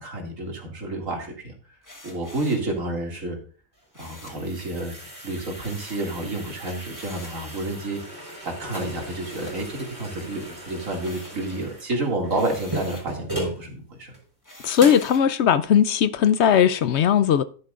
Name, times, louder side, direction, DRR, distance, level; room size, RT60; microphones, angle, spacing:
voice 1, 0.0-1.5 2.0-3.4 4.0-4.9 5.2-8.0 8.4-14.1, right 2 dB, 65° right, 2.7 m, -30 dB
sound 1, 1.8-2.7 3.9-4.5 5.6-6.1 6.9-7.4 9.2-10.1 10.5-11.5 12.3-13.1 14.4-15.3, left 1 dB, 15° left, 1.3 m, -46 dB
sound 2, 3.8-13.6 14.1-14.2 14.8-15.2, right 1 dB, 15° right, 4.4 m, -37 dB
voice 2, 14.6-17.4, left 8 dB, 65° left, 0.7 m, -18 dB
11.0 x 10.5 x 2.4 m
omnidirectional pair, 1.5 m